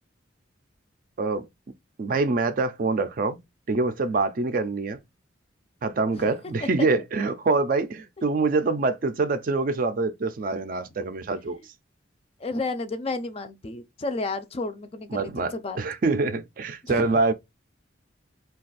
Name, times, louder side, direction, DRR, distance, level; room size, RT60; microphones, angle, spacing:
voice 1, 2.0-3.4 3.7-5.0 5.8-11.6 15.1-17.3, right 3 dB, 45° right, 0.4 m, -25 dB
voice 2, 12.4-15.8 16.8-17.2, left 3 dB, 30° left, 0.4 m, -32 dB
2.5 x 2.3 x 3.9 m
head